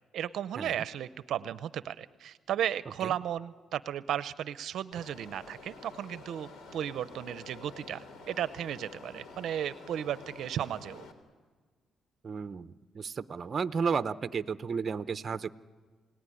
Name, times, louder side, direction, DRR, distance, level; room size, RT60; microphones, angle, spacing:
voice 1, 0.1-11.0, right 10 dB, 75° right, 14 dB, 0.7 m, -35 dB
sound 1, 4.9-11.1, left 3 dB, 70° left, 3.3 m, -49 dB
voice 2, 12.2-15.5, right 5 dB, 40° right, 13 dB, 0.8 m, -33 dB
28.0 x 18.5 x 9.9 m, 1.5 s
cardioid pair, 90°, 0 cm